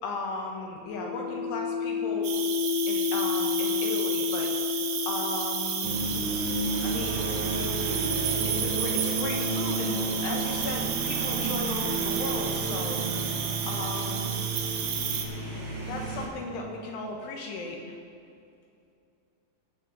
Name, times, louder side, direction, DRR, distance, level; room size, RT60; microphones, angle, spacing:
voice 1, 0.0-2.3 2.9-4.5 5.1-6.0 6.8-7.3 8.4-13.0 13.6-14.4 15.8-17.9, left 3 dB, 75° left, 0 dB, 3.2 m, -36 dB
sound 1, 0.9-11.2 12.1-15.9, left 8 dB, 55° left, 2.8 m, -34 dB
Cricket, 2.2-15.2, right 8 dB, 80° right, 3.2 m, -32 dB
sound 2, 5.8-16.3, right 3 dB, 45° right, 2.0 m, -32 dB
19.0 x 7.3 x 4.0 m, 2.5 s
omnidirectional pair, 5.1 m